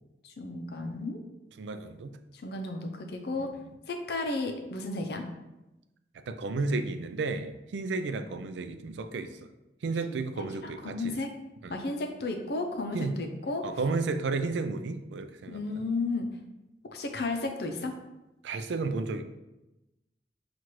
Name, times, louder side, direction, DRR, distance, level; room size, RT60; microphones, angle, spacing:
voice 1, 0.2-1.2 2.4-3.5 3.9-5.3 10.4-11.3 11.7-13.6 15.5-16.3 16.9-17.9, left 2 dB, 60° left, 4 dB, 0.5 m, -33 dB
voice 2, 1.6-2.1 3.4-3.5 6.3-9.3 9.8-11.2 11.6-11.8 12.9-13.1 13.6-15.8 18.4-19.2, right 3 dB, 90° right, 9 dB, 0.4 m, -32 dB
6.1 x 2.5 x 2.9 m, 0.98 s
head